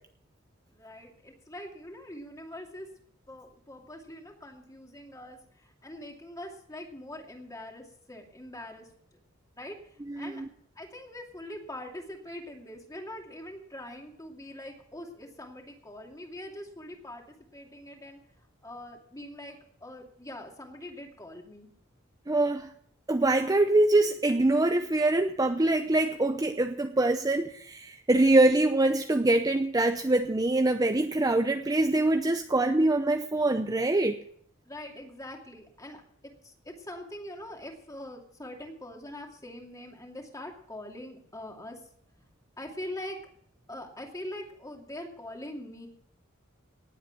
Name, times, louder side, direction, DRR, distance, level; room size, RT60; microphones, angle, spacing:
voice 1, 0.7-2.9 3.3-8.9 9.6-9.8 10.2-18.2 18.6-21.7 34.7-41.8 42.6-43.2 43.7-45.9, left 1 dB, 15° left, 2 dB, 2.5 m, -43 dB
voice 2, 10.1-10.5 22.3-22.7 23.1-34.2, right 2 dB, 15° right, 6 dB, 0.6 m, -24 dB
18.5 x 8.1 x 6.1 m, 0.62 s
head